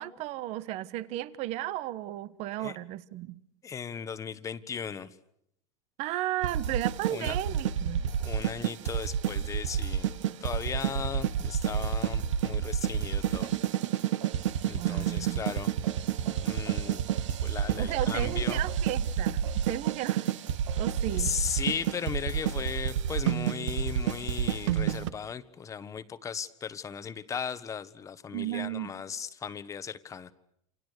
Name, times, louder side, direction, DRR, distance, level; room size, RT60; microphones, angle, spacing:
voice 1, 0.0-3.4 6.0-8.1 14.7-15.6 17.8-20.3 20.8-21.4 28.3-28.9, right 15 dB, 45° right, 1.2 m, -34 dB
voice 2, 3.6-5.1 7.1-7.5 8.2-10.1 10.4-13.5 13.9-14.0 14.6-15.7 16.2-17.0 17.4-18.6 21.1-30.3, left 7 dB, 20° left, 1.4 m, -37 dB
sound 1, 6.4-25.1, right 9 dB, 85° right, 1.6 m, -29 dB
28.5 x 27.5 x 6.7 m
supercardioid pair, 140°, 15 cm